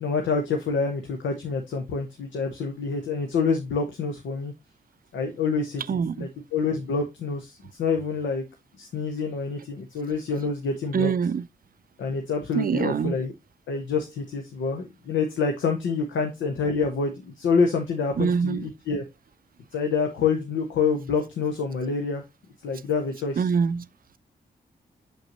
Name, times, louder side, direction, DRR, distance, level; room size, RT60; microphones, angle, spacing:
voice 1, 0.0-4.5 5.1-5.8 6.2-8.4 8.8-11.1 12.0-13.3 13.7-19.0 19.7-22.2 22.6-23.4, left 4 dB, 85° left, 0.9 m, -27 dB
voice 2, 5.9-6.3 10.9-11.5 12.5-13.1 18.2-18.6 23.4-23.9, right 6 dB, 50° right, 0.5 m, -24 dB
6.3 x 5.4 x 2.9 m
supercardioid pair, 40°, 19 cm